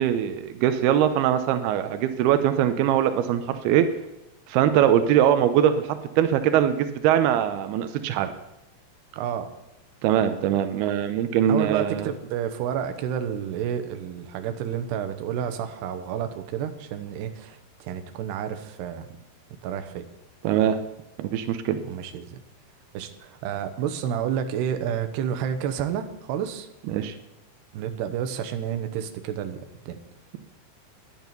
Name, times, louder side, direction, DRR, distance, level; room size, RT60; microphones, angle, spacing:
voice 1, 0.0-3.9 4.5-8.3 10.0-12.1 20.4-20.8 21.2-21.8 26.9-27.2, right 10 dB, 90° right, 9 dB, 2.2 m, -22 dB
voice 2, 9.1-9.5 11.5-19.1 19.6-20.0 21.8-22.4 22.9-26.7 27.7-30.0, right 9 dB, 75° right, 8 dB, 2.8 m, -30 dB
11.0 x 10.5 x 6.8 m, 0.95 s
omnidirectional pair, 5.5 m